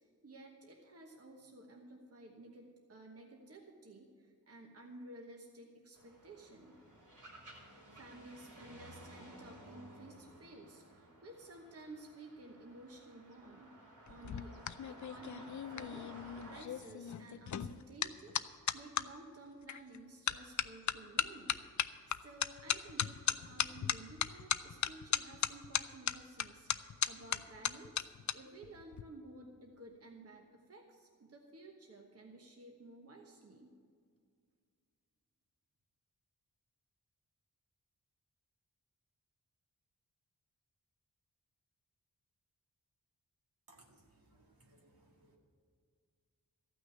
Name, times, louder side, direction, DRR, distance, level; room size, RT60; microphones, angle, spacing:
voice 1, 0.2-6.8 7.6-13.7 14.1-18.4 18.7-21.6 21.8-28.1 28.3-33.7, right 2 dB, 40° right, 1 dB, 1.2 m, -54 dB
sound 1, 5.9-16.6, right 1 dB, 55° right, 3.1 m, -56 dB
sound 2, 14.1-19.1 19.7-20.0 20.3-28.3 28.6-29.0, left 9 dB, 55° left, 0.5 m, -36 dB
voice 2, 43.7-44.0 44.7-44.8 45.2-45.4, right 2 dB, 75° right, 0 dB, 2.1 m, -62 dB
14.5 x 6.2 x 9.2 m, 2.1 s
wide cardioid pair, 135°, 36 cm